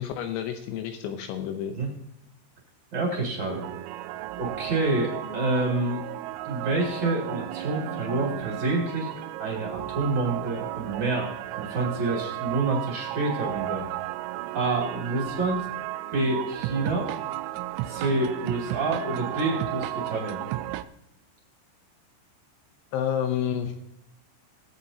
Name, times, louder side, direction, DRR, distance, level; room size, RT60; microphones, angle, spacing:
voice 1, 0.0-1.8 22.9-23.7, left 9 dB, 80° left, 6 dB, 3.0 m, -29 dB
voice 2, 2.9-3.7 4.4-6.0 6.4-9.1 9.4-11.3 11.6-13.9 14.5-15.7 16.1-17.1 17.9-20.4, right 2 dB, 35° right, -2 dB, 2.0 m, -27 dB
sound 1, 3.5-20.8, right 15 dB, 85° right, 2.9 m, -34 dB
21.0 x 8.1 x 2.8 m, 0.79 s
omnidirectional pair, 5.5 m